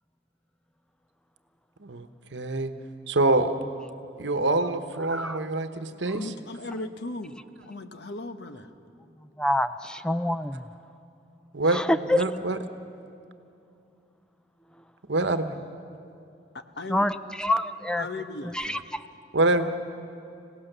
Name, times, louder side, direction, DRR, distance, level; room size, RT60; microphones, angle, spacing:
voice 1, 2.3-2.7 3.1-3.5 4.2-6.2 11.5-11.8 12.1-12.6 15.1-15.5 19.3-19.7, right 2 dB, 80° right, 9 dB, 1.0 m, -25 dB
voice 2, 6.1-7.4 7.7-8.7 16.5-17.0 18.0-18.9 19.6-19.7, left 2 dB, 65° left, 8 dB, 1.1 m, -37 dB
voice 3, 9.4-10.6 11.7-12.2 16.9-17.1 17.4-18.1 18.6-19.0, left 1 dB, 5° left, 11 dB, 0.4 m, -26 dB
26.0 x 17.0 x 6.7 m, 2.6 s
head